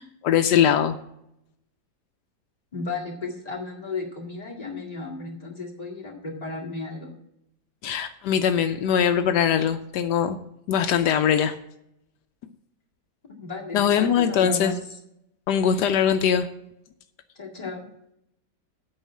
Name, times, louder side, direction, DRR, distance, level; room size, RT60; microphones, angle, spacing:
voice 1, 0.2-1.0 7.8-10.4 10.7-11.6 13.7-14.7 15.5-16.5, left 8 dB, 80° left, 9 dB, 1.2 m, -21 dB
voice 2, 2.7-7.1 13.3-14.8 17.4-17.9, left 3 dB, 20° left, -2 dB, 2.2 m, -34 dB
8.7 x 5.6 x 7.2 m, 0.79 s
omnidirectional pair, 1.8 m